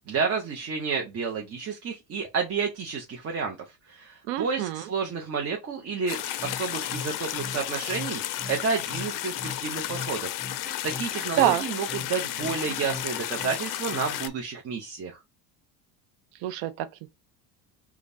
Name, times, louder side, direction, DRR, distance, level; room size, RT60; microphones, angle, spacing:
voice 1, 0.1-3.6 3.9-10.4 10.8-15.2, right 5 dB, 35° right, 0.8 m, -30 dB
voice 2, 4.2-4.9 11.4-11.6 16.4-17.1, right 13 dB, 80° right, 0.7 m, -26 dB
sound 1, 6.1-14.3, left 13 dB, 50° left, 0.5 m, -33 dB
sound 2, 6.4-14.4, left 2 dB, ahead, 0.8 m, -41 dB
5.1 x 2.3 x 2.6 m
supercardioid pair, 100°, 44 cm